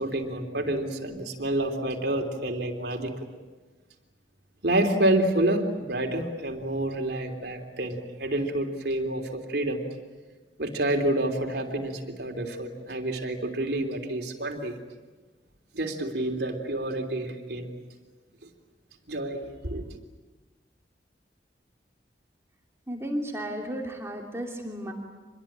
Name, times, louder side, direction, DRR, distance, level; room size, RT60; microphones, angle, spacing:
voice 1, 0.0-3.1 4.6-9.8 10.6-14.8 15.7-17.7 19.1-19.9, right 1 dB, 65° right, 2 dB, 3.4 m, -28 dB
voice 2, 22.9-24.9, equal, 15° right, 0 dB, 2.8 m, -33 dB
26.0 x 21.5 x 8.9 m, 1.3 s
head